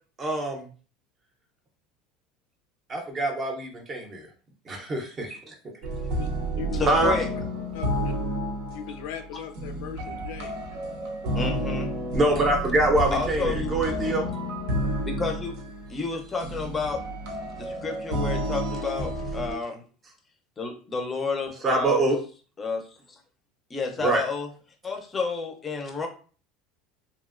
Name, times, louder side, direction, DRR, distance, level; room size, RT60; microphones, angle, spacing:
voice 1, 0.2-0.7 2.9-4.3 4.7-5.5 6.9-7.1 12.1-14.2 21.6-22.2 24.0-24.2, right 2 dB, 25° right, 0.6 m, -24 dB
sound 1, 5.8-19.5, right 1 dB, 65° right, 0.6 m, -30 dB
voice 2, 6.0-7.2 7.7-8.1 8.7-10.6, left 8 dB, 75° left, 0.4 m, -38 dB
voice 3, 6.8-7.3 11.3-11.9 13.1-13.8 15.1-15.5 15.9-17.0 17.6-19.8 20.6-22.0 22.6-23.0 23.7-24.5 24.8-26.1, left 4 dB, 20° left, 0.5 m, -30 dB
2.9 x 2.5 x 2.4 m
cardioid pair, 155°, 0 cm